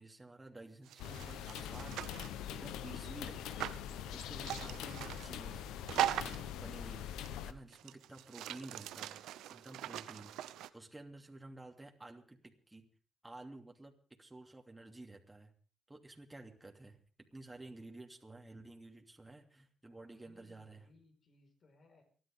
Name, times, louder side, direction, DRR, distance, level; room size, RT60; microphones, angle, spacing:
voice 1, 0.0-3.6 4.1-5.6 6.0-7.1 7.5-9.2 9.5-12.9 13.2-15.5 15.9-20.9, right 2 dB, 20° right, 1 dB, 2.8 m, -52 dB
sound 1, 0.9-2.4 3.6-3.8 4.4-5.3 5.9-6.5 7.2-7.3 7.7-10.7, right 12 dB, 85° right, 0.7 m, -40 dB
sound 2, 1.0-7.5, left 9 dB, 90° left, 0.9 m, -43 dB
voice 2, 20.1-22.0, left 2 dB, 60° left, 4 dB, 4.7 m, -65 dB
29.5 x 11.0 x 3.7 m, 0.38 s
supercardioid pair, 50°, 0 cm